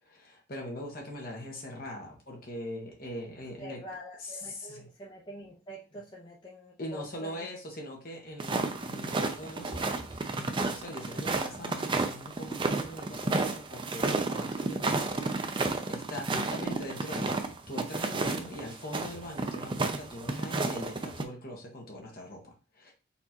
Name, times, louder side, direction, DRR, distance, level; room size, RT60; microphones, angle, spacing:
voice 1, 0.0-3.8 4.2-4.9 6.8-22.9, left 1 dB, 50° left, 0 dB, 1.5 m, -42 dB
voice 2, 3.6-7.5, equal, 25° left, -5 dB, 0.9 m, -46 dB
sound 1, 8.4-21.2, right 3 dB, 25° right, 0.5 m, -31 dB
4.3 x 3.9 x 2.9 m, 0.33 s
head